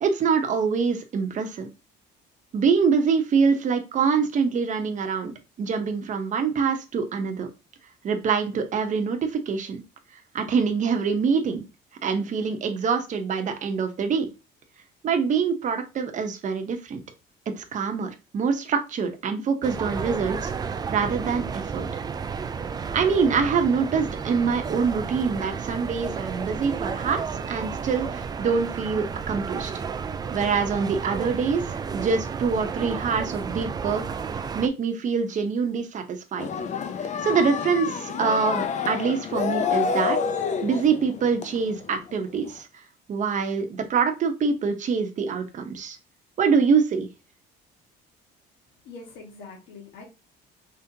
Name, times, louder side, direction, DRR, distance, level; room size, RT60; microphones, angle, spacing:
voice 1, 0.0-1.7 2.5-7.5 8.0-9.8 10.3-11.7 12.0-14.3 15.0-17.0 17.6-21.9 22.9-29.7 30.3-34.0 34.5-36.5 37.0-40.2 40.6-42.8 43.1-46.0 46.4-47.1, right 5 dB, 40° right, 5 dB, 0.9 m, -25 dB
sound 1, 19.6-34.7, right 6 dB, 20° right, 0.3 m, -32 dB
sound 2, 36.4-42.2 42.6-42.7, left 6 dB, 40° left, 0.7 m, -28 dB
voice 2, 48.8-50.0, left 4 dB, 80° left, 0 dB, 1.6 m, -43 dB
5.3 x 3.3 x 2.8 m, 0.29 s
cardioid pair, 145°, 19 cm